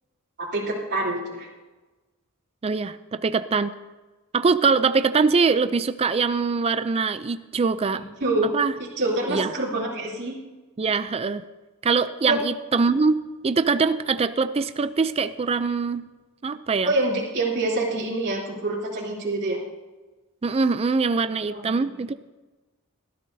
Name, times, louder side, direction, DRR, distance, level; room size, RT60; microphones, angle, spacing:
voice 1, 0.4-1.5 7.9-8.5 8.8-10.4 12.3-12.4 16.8-19.6 21.5-21.7, right 2 dB, 50° right, -6 dB, 3.2 m, -26 dB
voice 2, 2.6-3.7 4.3-8.0 8.5-8.7 9.3-9.5 10.8-11.4 11.8-13.2 13.4-16.0 16.4-16.9 20.4-22.1, right 4 dB, 25° right, 12 dB, 0.4 m, -23 dB
20.0 x 13.0 x 2.7 m, 1.2 s
head